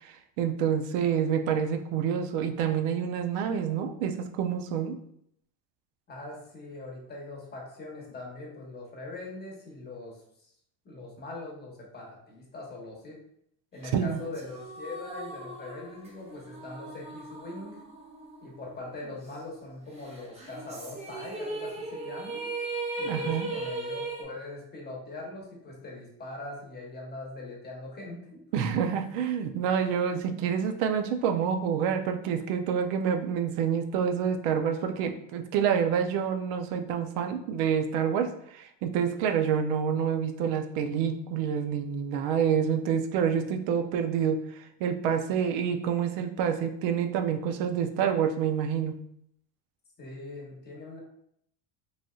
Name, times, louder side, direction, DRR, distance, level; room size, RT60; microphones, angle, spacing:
voice 1, 0.0-5.0 13.9-14.2 23.0-23.5 28.5-48.9, right 7 dB, 75° right, 7 dB, 0.6 m, -28 dB
voice 2, 6.1-10.5 10.8-13.2 13.7-17.8 18.4-22.5 23.0-28.4 50.0-51.0, left 2 dB, 20° left, -2 dB, 0.9 m, -42 dB
sound 1, 14.1-18.7 19.0-19.1 20.4-24.2, right 2 dB, 15° right, 0.6 m, -37 dB
3.2 x 2.6 x 2.3 m, 0.71 s
cardioid pair, 130°, 46 cm